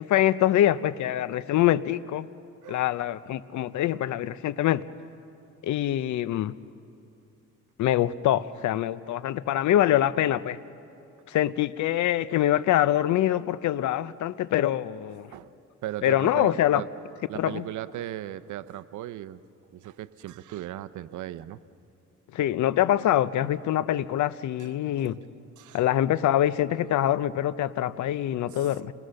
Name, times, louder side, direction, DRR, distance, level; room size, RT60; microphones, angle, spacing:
voice 1, 0.0-2.3 2.7-4.8 5.6-6.5 7.8-10.6 11.3-15.3 16.0-16.8 17.3-17.7 22.3-25.2 25.7-28.9, left 12 dB, 70° left, 16 dB, 0.7 m, -24 dB
voice 2, 15.8-16.9 17.3-19.4 19.7-21.6 25.0-25.1 25.6-25.8 28.5-28.6, right 13 dB, 75° right, 14 dB, 0.7 m, -37 dB
28.5 x 21.0 x 6.5 m, 2.7 s
cardioid pair, 90°, 30 cm